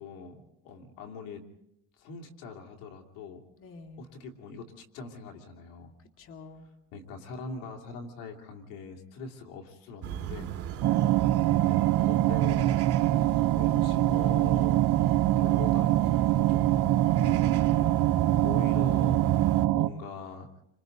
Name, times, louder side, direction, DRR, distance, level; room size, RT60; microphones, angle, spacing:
voice 1, 0.0-1.4 2.0-3.4 4.0-5.9 6.9-10.5 11.0-12.8 13.1-17.4 18.4-20.5, left 4 dB, 80° left, 2 dB, 2.9 m, -43 dB
voice 2, 3.6-4.1 6.0-6.7 10.8-11.3 17.3-18.1, left 2 dB, 40° left, 4 dB, 2.1 m, -48 dB
sound 1, 10.0-19.7, right 10 dB, 45° right, 2.3 m, -35 dB
sound 2, 10.8-19.9, right 14 dB, 65° right, 0.9 m, -24 dB
28.5 x 26.0 x 4.0 m, 0.81 s
cardioid pair, 130°, 32 cm